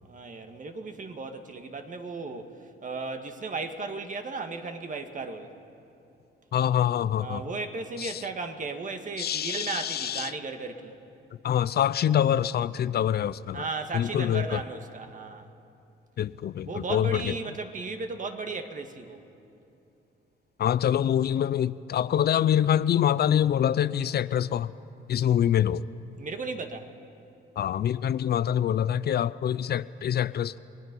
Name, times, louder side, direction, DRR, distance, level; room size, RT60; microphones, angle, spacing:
voice 1, 0.0-2.5 2.8-5.5 7.2-10.9 13.5-15.5 16.6-19.2 26.2-26.9, right 3 dB, 40° right, 6 dB, 1.8 m, -35 dB
voice 2, 6.5-7.4 8.0-8.1 9.2-10.3 11.4-13.6 13.9-14.6 16.2-17.3 20.6-24.7 25.1-25.8 27.6-30.6, left 10 dB, 55° left, 16 dB, 0.5 m, -25 dB
29.5 x 19.5 x 5.4 m, 2.8 s
cardioid pair, 90°, 20 cm